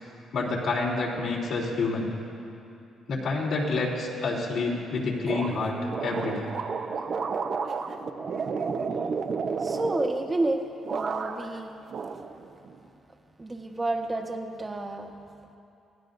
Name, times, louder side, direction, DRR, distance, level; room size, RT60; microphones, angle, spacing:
voice 1, 0.3-2.1 3.1-5.7 6.0-6.5, left 3 dB, 70° left, -2 dB, 3.3 m, -28 dB
sound 1, 5.3-10.5 10.8-11.6 11.9-12.8, right 5 dB, 55° right, 1.0 m, -32 dB
voice 2, 9.6-11.8 13.4-15.1, right 2 dB, 20° right, 3 dB, 1.4 m, -30 dB
25.5 x 17.0 x 2.7 m, 2.7 s
cardioid pair, 90°, 0 cm